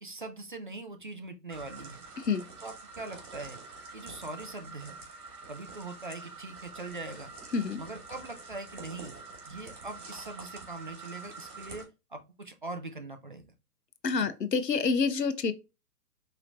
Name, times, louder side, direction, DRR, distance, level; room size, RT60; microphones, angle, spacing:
voice 1, 0.0-2.0 2.6-3.6 3.9-5.0 5.5-7.3 7.8-9.2 9.5-13.5 14.1-14.3, right 2 dB, 35° right, 0.4 m, -42 dB
sound 1, 1.5-11.8, right 3 dB, 65° right, 2.0 m, -46 dB
voice 2, 14.0-15.5, left 5 dB, 85° left, 0.7 m, -27 dB
4.7 x 3.1 x 2.5 m
figure-of-eight pair, 125°, 48 cm